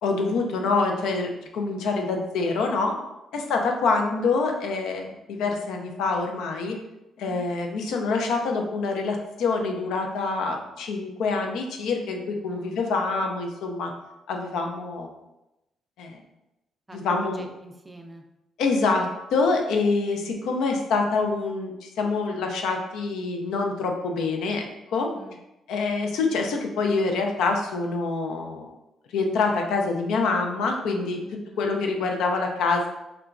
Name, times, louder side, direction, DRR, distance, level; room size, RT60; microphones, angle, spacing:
voice 1, 0.0-3.0 3.3-6.8 7.2-13.9 14.3-15.1 16.0-16.2 16.9-17.5 18.6-25.1 25.7-28.7 29.1-31.2 31.6-32.9, left 3 dB, 85° left, 3 dB, 0.4 m, -26 dB
voice 2, 16.9-18.2 25.1-25.4 31.2-31.7, right 1 dB, 15° right, 4 dB, 0.4 m, -44 dB
2.9 x 2.2 x 2.4 m, 0.91 s
cardioid pair, 90°, 0 cm